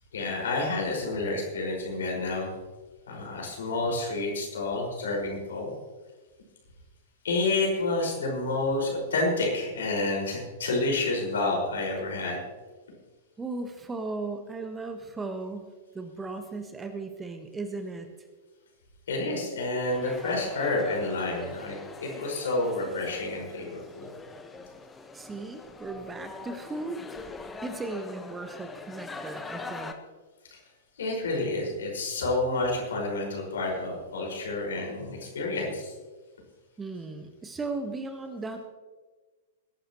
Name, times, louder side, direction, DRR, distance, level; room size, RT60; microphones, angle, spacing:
voice 1, 0.1-2.5 3.1-5.7 7.2-12.4 19.1-24.1 30.5-30.6 31.0-35.9, left 2 dB, 65° left, 0 dB, 5.3 m, -29 dB
voice 2, 13.4-15.7 15.9-18.1 25.1-27.2 27.6-29.9 36.8-38.6, right 3 dB, 15° right, 7 dB, 1.3 m, -36 dB
sound 1, 19.7-29.9, left 3 dB, 10° left, 1.2 m, -43 dB
20.5 x 12.0 x 3.1 m, 1.3 s
figure-of-eight pair, 100°, 0 cm